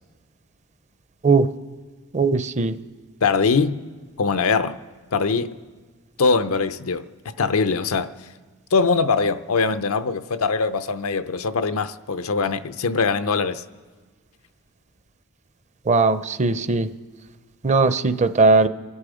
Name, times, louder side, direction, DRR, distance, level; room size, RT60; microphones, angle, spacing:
voice 1, 2.1-2.8 15.9-16.9 17.6-18.7, right 3 dB, 35° right, 0.5 m, -18 dB
voice 2, 3.2-3.8 4.2-4.8 5.1-5.6 6.2-7.1 7.4-8.1 8.7-13.6, left 4 dB, 85° left, 0.6 m, -22 dB
27.0 x 9.9 x 5.0 m
head